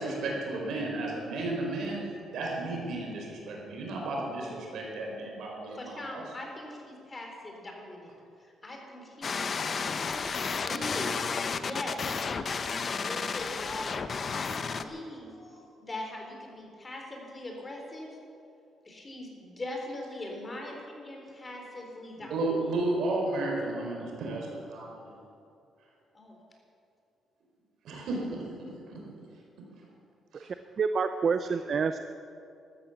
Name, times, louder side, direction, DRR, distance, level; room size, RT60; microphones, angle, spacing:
voice 1, 0.0-6.2 22.3-25.1 27.8-29.0 30.3-30.5, right 2 dB, 75° right, 0 dB, 4.3 m, -33 dB
voice 2, 5.8-8.1 8.6-9.8 10.1-11.2 11.6-18.1 18.9-22.3 26.1-26.4, left 1 dB, 25° left, 1 dB, 3.9 m, -41 dB
sound 1, 9.2-14.8, left 5 dB, 45° left, 0.8 m, -32 dB
voice 3, 30.8-32.0, right 5 dB, 50° right, 9 dB, 0.6 m, -27 dB
13.5 x 13.0 x 7.2 m, 2.5 s
cardioid pair, 90°, 0 cm